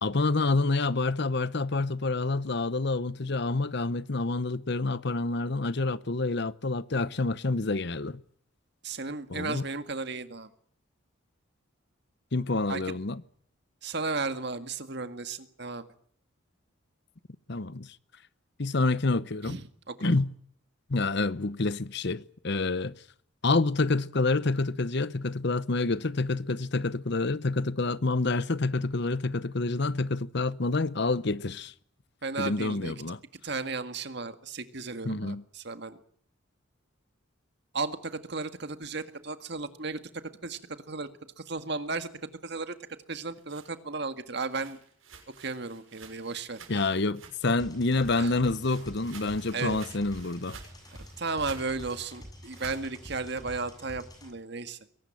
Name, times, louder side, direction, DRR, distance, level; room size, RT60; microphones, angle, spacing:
voice 1, 0.0-8.2 9.3-9.6 12.3-13.2 17.5-17.9 18.6-19.6 20.0-20.3 20.9-22.9 23.4-31.7 32.4-33.2 35.0-35.4 46.7-50.6, left 3 dB, 55° left, 0.9 m, -28 dB
voice 2, 8.8-10.5 12.7-13.0 13.8-15.9 19.4-20.1 32.2-32.9 33.4-36.0 37.7-40.0 40.4-40.6 40.9-41.1 41.5-42.1 42.4-42.7 43.1-44.8 45.4-46.9 48.2-48.3 49.5-49.8 51.0-54.8, right 3 dB, 55° right, 1.9 m, -34 dB
sound 1, 43.3-47.6 47.9-52.9, right 5 dB, 80° right, 6.2 m, -51 dB
sound 2, 47.6-54.3, equal, 20° left, 7.0 m, -47 dB
22.5 x 18.5 x 9.0 m
head